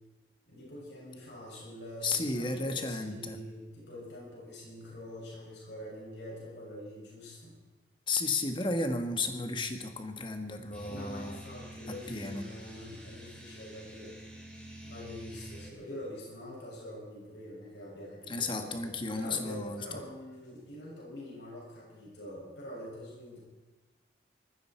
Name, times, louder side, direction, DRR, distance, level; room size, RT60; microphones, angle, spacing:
voice 1, 0.5-7.6 9.1-9.6 10.8-14.1 14.8-23.4, left 1 dB, 75° left, -5 dB, 7.3 m, -45 dB
voice 2, 2.0-3.4 8.1-11.4 11.9-12.5 18.3-19.8, left 3 dB, 25° left, 6 dB, 1.5 m, -33 dB
sound 1, 10.7-15.7, right 1 dB, 5° left, 2.9 m, -48 dB
20.5 x 14.5 x 4.6 m, 1.2 s
head